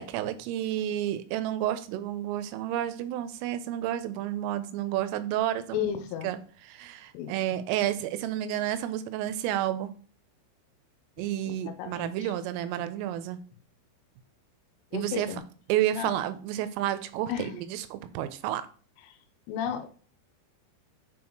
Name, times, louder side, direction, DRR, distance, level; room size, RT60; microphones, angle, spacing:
voice 1, 0.0-5.9 6.2-6.4 6.7-9.9 11.2-13.4 14.9-15.3 15.7-18.7, right 12 dB, 85° right, 12 dB, 3.1 m, -30 dB
voice 2, 5.7-6.3 7.1-7.6 11.4-12.3 14.9-15.4 15.9-16.1 17.3-17.6 19.0-19.2 19.5-19.9, left 9 dB, 80° left, 7 dB, 2.8 m, -34 dB
8.6 x 3.7 x 3.0 m, 0.41 s
omnidirectional pair, 5.9 m